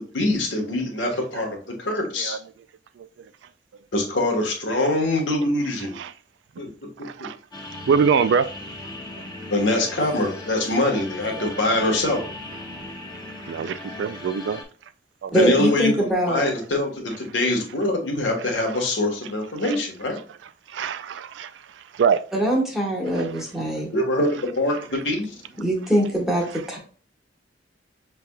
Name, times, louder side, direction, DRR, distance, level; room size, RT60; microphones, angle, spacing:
voice 1, 0.0-2.4 3.9-6.0 6.6-6.7 7.2-7.3 9.5-12.3 15.3-20.2 23.9-24.8 25.0-25.3, left 1 dB, 80° left, 1.3 m, -24 dB
voice 2, 7.0-7.4 7.9-8.5 13.5-14.6 15.2-15.3 20.7-21.5 21.9-22.2, right 6 dB, 70° right, 0.3 m, -22 dB
sound 1, 7.5-14.6, left 2 dB, 20° left, 1.0 m, -38 dB
voice 3, 15.3-16.4 22.3-23.9 25.6-26.8, equal, ahead, 1.3 m, -22 dB
5.7 x 3.4 x 2.2 m
head